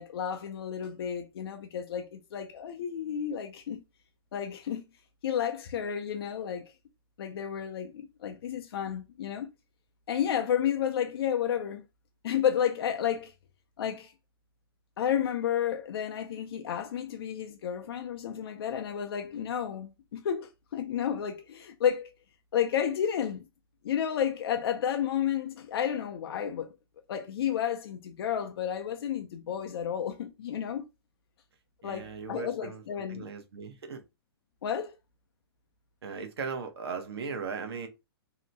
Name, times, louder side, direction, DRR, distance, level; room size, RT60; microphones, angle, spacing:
voice 1, 0.0-3.8 4.3-4.8 5.2-6.7 7.2-9.5 10.1-11.9 12.2-13.3 13.8-14.1 15.0-22.1 22.5-23.4 23.8-26.7 27.1-30.9 31.8-33.3 34.6-35.0, left 9 dB, 70° left, 0.5 m, -31 dB
voice 2, 31.8-32.8 33.1-34.0 36.0-37.9, right 5 dB, 75° right, 0.8 m, -37 dB
2.7 x 2.1 x 2.6 m
hypercardioid pair, 145°, 13 cm